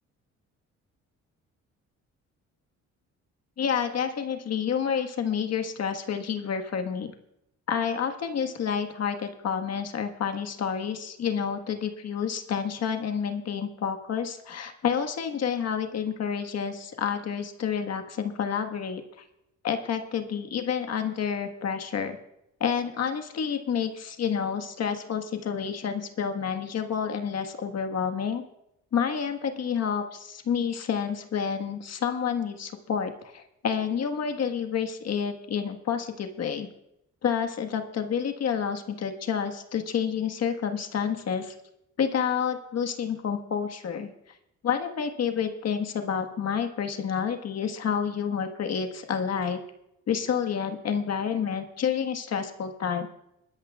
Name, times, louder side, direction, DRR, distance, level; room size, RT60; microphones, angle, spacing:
voice 1, 3.6-7.1 7.7-19.2 19.6-22.2 22.6-28.4 28.9-36.7 37.2-41.5 42.0-44.1 44.6-49.6 50.1-53.1, left 7 dB, 55° left, 5 dB, 1.5 m, -29 dB
21.0 x 12.5 x 2.4 m, 0.82 s
cardioid pair, 90°, 30 cm